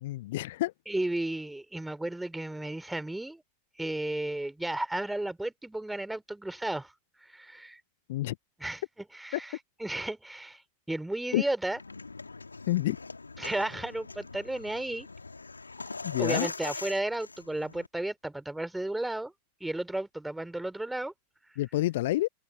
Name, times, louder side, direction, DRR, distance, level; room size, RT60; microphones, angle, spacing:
voice 1, 0.0-0.7 8.1-8.3 11.3-11.4 12.7-13.0 16.0-16.5 21.6-22.3, left 16 dB, 55° left, 0.7 m, -28 dB
voice 2, 0.9-3.4 3.8-6.9 7.3-7.8 8.6-8.8 9.1-10.6 10.9-11.8 13.4-15.1 16.2-19.3 19.6-21.1, right 1 dB, 5° right, 3.3 m, -33 dB
sound 1, 11.7-17.9, left 3 dB, 80° left, 2.7 m, -42 dB
open air
figure-of-eight pair, 90°, 0 cm